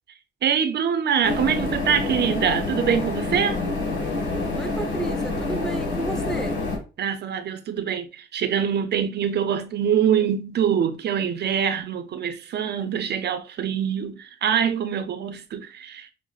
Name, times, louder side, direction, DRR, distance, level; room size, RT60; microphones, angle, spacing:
voice 1, 0.4-3.6 7.0-16.1, right 8 dB, 55° right, 0.5 m, -24 dB
sound 1, 1.2-6.8, left 3 dB, 65° left, 1.6 m, -27 dB
voice 2, 4.5-6.6, right 2 dB, 5° left, 0.7 m, -32 dB
6.2 x 2.1 x 2.3 m
cardioid pair, 90°, 20 cm